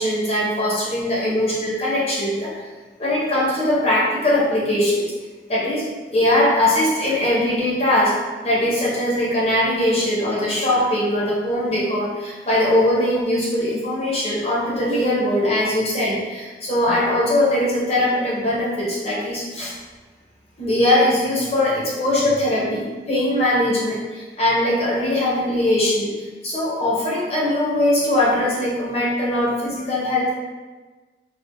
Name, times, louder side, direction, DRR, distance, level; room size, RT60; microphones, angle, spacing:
voice 1, 0.0-2.5 3.0-5.1 5.5-5.8 6.1-19.7 20.6-30.4, left 1 dB, 35° left, -6 dB, 0.8 m, -21 dB
3.5 x 2.3 x 2.7 m, 1.3 s
head